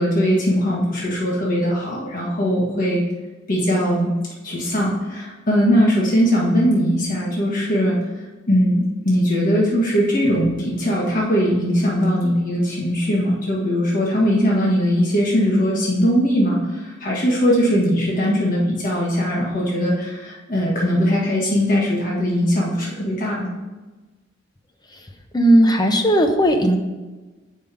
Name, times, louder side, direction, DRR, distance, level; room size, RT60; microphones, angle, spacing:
voice 1, 0.0-3.0 3.5-4.1 4.4-8.0 8.5-23.5, equal, 45° left, -5 dB, 1.7 m, -20 dB
voice 2, 25.3-26.8, right 1 dB, 20° left, 4 dB, 0.8 m, -16 dB
7.3 x 5.5 x 5.1 m, 1.2 s
head